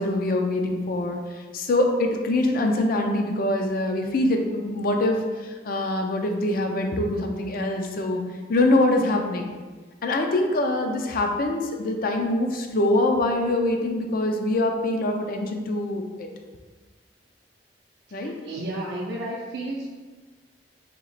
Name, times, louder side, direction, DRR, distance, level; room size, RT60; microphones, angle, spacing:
voice 1, 0.0-8.2 8.5-9.5 10.0-16.3 18.1-18.3, left 1 dB, 50° left, 3 dB, 0.4 m, -24 dB
voice 2, 18.1-19.9, right 1 dB, 65° right, -5 dB, 0.5 m, -32 dB
3.0 x 2.9 x 4.0 m, 1.4 s
head